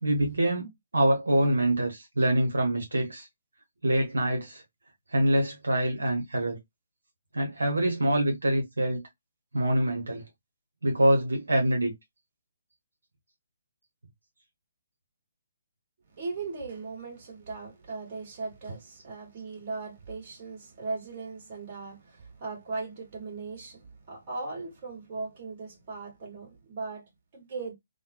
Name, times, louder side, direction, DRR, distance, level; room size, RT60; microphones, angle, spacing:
voice 1, 0.0-3.3 3.8-4.6 5.1-6.6 7.3-9.0 9.5-10.2 10.8-11.9, right 1 dB, 75° right, 1.0 m, -25 dB
voice 2, 16.1-27.7, right 3 dB, 40° right, 1.8 m, -38 dB
3.3 x 2.2 x 2.9 m
figure-of-eight pair, 140°, 0 cm